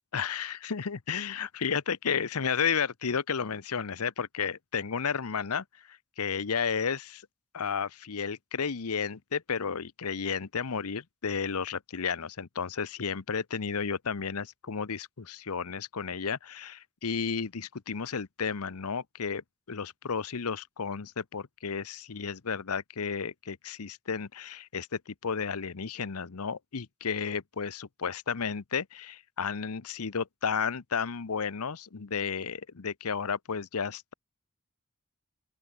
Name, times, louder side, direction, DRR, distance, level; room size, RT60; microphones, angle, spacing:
voice 1, 0.1-7.2 7.5-34.1, left 6 dB, 80° left, 0.8 m, -32 dB
open air
head